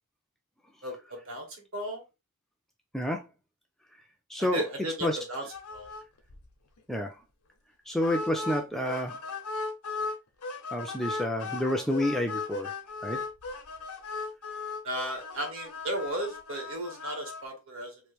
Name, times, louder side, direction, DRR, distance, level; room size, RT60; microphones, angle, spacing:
voice 1, 0.8-2.0 4.4-5.4 5.7-5.9 14.8-18.0, right 1 dB, 70° right, 1.4 m, -35 dB
voice 2, 2.9-3.3 4.3-4.6 5.0-5.2 6.9-7.2 7.9-9.2 10.7-12.7 13.0-13.2, left 1 dB, ahead, 0.3 m, -29 dB
sound 1, 5.5-6.0 6.3-6.4 6.8-6.9 8.0-10.2 10.4-17.4, left 3 dB, 80° left, 0.8 m, -37 dB
3.0 x 2.5 x 3.4 m
head